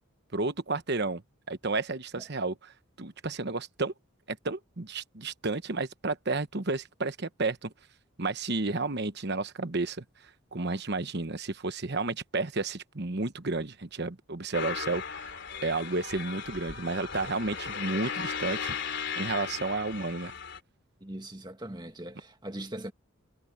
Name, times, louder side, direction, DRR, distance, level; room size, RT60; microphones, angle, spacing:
voice 1, 0.3-1.2 1.5-2.7 3.0-3.9 4.3-7.7 8.2-10.0 10.5-15.3 15.6-18.7 19.2-20.3, right 3 dB, 50° right, 1.1 m, -32 dB
sound 1, 14.5-20.6, left 6 dB, 50° left, 3.9 m, -36 dB
voice 2, 21.0-22.9, right 1 dB, 20° right, 1.9 m, -40 dB
head